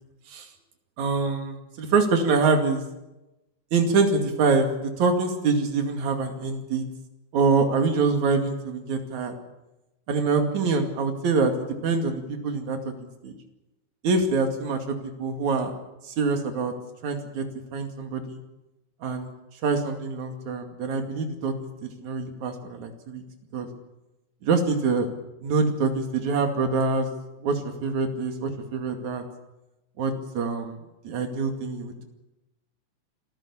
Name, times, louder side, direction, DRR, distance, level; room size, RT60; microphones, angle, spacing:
voice 1, 1.0-2.8 3.7-6.8 7.3-9.3 10.1-12.9 13.2-13.3 14.0-15.7 16.0-16.7 17.0-17.4 17.7-18.4 19.0-19.3 19.6-21.5 21.8-23.2 23.5-23.7 24.4-25.1 25.4-27.1 27.4-29.2 30.0-30.8 31.0-32.0, right 4 dB, 70° right, 5 dB, 3.7 m, -25 dB
26.0 x 15.0 x 8.6 m, 0.98 s
omnidirectional pair, 3.5 m